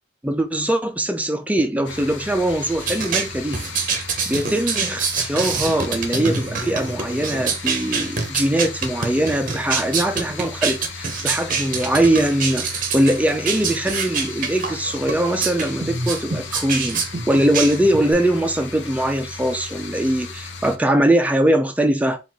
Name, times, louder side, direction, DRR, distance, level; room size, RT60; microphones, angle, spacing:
voice 1, 0.2-3.6 4.3-22.2, right 1 dB, 10° right, 0.4 m, -21 dB
sound 1, 1.8-20.8, left 4 dB, 75° left, 0.7 m, -36 dB
sound 2, 2.8-18.1, right 5 dB, 45° right, 0.8 m, -26 dB
4.1 x 2.4 x 4.3 m
head